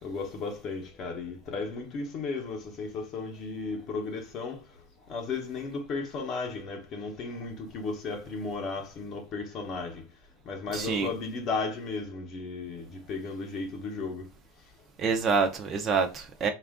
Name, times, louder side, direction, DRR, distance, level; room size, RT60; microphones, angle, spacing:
voice 1, 0.0-4.6 5.1-10.0 10.5-14.3, left 4 dB, 30° left, 0.8 m, -35 dB
voice 2, 10.7-11.1 15.0-16.5, right 5 dB, 25° right, 0.5 m, -26 dB
4.2 x 2.4 x 3.5 m
supercardioid pair, 165°, 0 cm